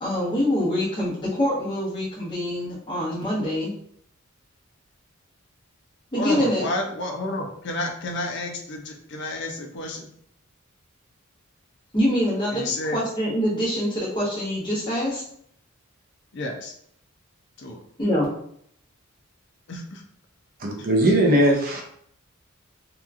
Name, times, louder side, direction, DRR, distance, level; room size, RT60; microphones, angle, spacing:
voice 1, 0.0-3.7 6.1-6.7 11.9-12.6 12.9-15.2 18.0-18.3, equal, 20° left, -8 dB, 1.0 m, -24 dB
voice 2, 6.2-10.1 12.5-13.0 16.3-16.7 17.6-17.8 19.7-20.0, left 2 dB, 55° left, 3 dB, 0.4 m, -30 dB
voice 3, 20.6-21.8, right 1 dB, 40° right, 1 dB, 0.5 m, -19 dB
2.9 x 2.3 x 2.4 m, 0.68 s
head